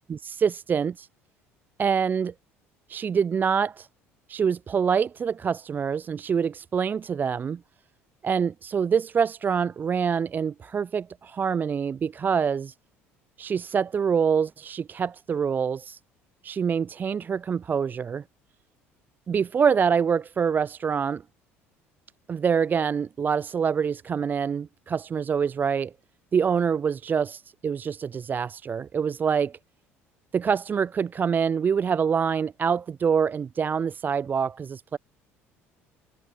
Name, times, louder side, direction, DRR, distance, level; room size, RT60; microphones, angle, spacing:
voice 1, 0.1-1.1 1.8-2.3 2.9-3.9 4.3-7.6 8.2-12.7 13.4-16.0 16.4-18.2 19.3-21.2 22.3-25.9 26.3-29.6 30.3-35.0, right 6 dB, 25° right, 0.4 m, -25 dB
figure-of-eight pair, 60°, 7 cm